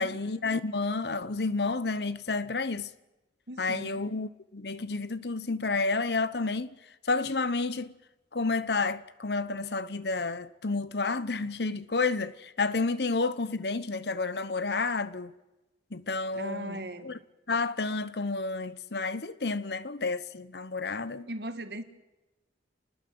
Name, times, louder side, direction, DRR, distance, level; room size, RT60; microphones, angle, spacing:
voice 1, 0.0-2.9 3.6-6.7 7.1-7.9 8.3-15.3 15.9-16.8 17.0-17.1 17.5-21.3, left 3 dB, 65° left, 1.0 m, -30 dB
voice 2, 3.5-4.1 16.3-17.2 20.8-21.8, right 1 dB, 65° right, 2.1 m, -39 dB
28.0 x 20.5 x 7.9 m
head